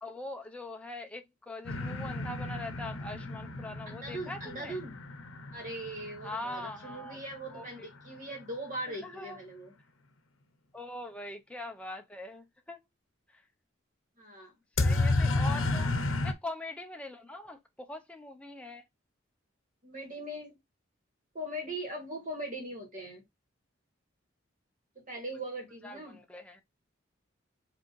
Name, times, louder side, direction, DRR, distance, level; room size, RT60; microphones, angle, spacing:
voice 1, 0.0-4.8 6.2-7.2 7.5-7.9 8.9-9.4 10.7-12.8 13.3-13.4 14.8-15.9 16.2-18.8 25.8-26.6, left 1 dB, 5° left, 0.6 m, -42 dB
sound 1, 1.7-7.4 14.8-16.3, left 2 dB, 80° left, 0.7 m, -32 dB
voice 2, 3.9-5.0 5.5-9.7 14.2-14.5 15.6-16.2 19.8-20.6 21.3-23.2 25.1-26.2, right 1 dB, 40° right, 2.2 m, -40 dB
5.1 x 3.4 x 3.1 m
head